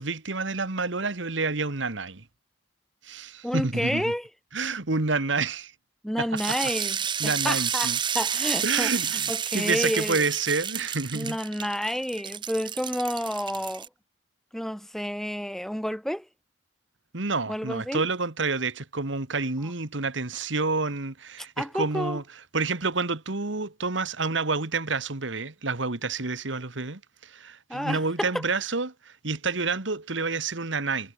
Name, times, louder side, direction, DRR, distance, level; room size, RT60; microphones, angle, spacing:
voice 1, 0.0-2.2 3.0-4.1 4.5-5.7 6.2-6.4 7.2-8.0 8.6-11.4 17.1-22.2 22.5-31.1, right 3 dB, 70° right, 1.7 m, -29 dB
voice 2, 3.4-4.3 6.0-7.0 7.2-8.9 9.3-10.2 11.1-13.9 14.5-16.3 17.5-18.0 21.6-22.2 27.7-28.3, equal, ahead, 1.0 m, -30 dB
sound 1, 6.4-13.9, right 8 dB, 25° right, 0.6 m, -30 dB
head